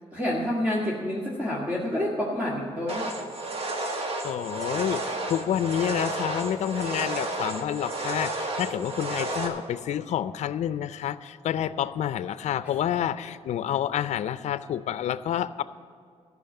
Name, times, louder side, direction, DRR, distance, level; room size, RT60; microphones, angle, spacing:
voice 1, 0.1-3.1, left 1 dB, 15° right, -5 dB, 1.9 m, -28 dB
sound 1, 2.9-9.5, right 2 dB, 55° right, 1.7 m, -32 dB
voice 2, 4.2-15.6, left 10 dB, 75° left, 14 dB, 0.4 m, -29 dB
14.0 x 6.1 x 8.9 m, 2.1 s
cardioid pair, 110°, 12 cm